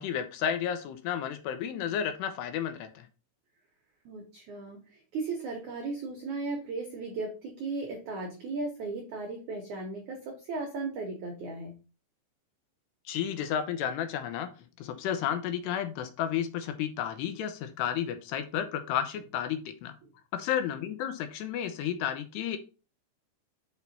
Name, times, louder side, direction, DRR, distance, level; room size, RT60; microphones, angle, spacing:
voice 1, 0.0-3.1 13.1-14.5 14.8-19.9 20.3-22.6, left 9 dB, 80° left, 8 dB, 2.7 m, -32 dB
voice 2, 4.0-11.8 20.0-20.1, right 3 dB, 80° right, 2 dB, 1.7 m, -36 dB
6.4 x 5.5 x 4.2 m, 0.34 s
omnidirectional pair, 5.4 m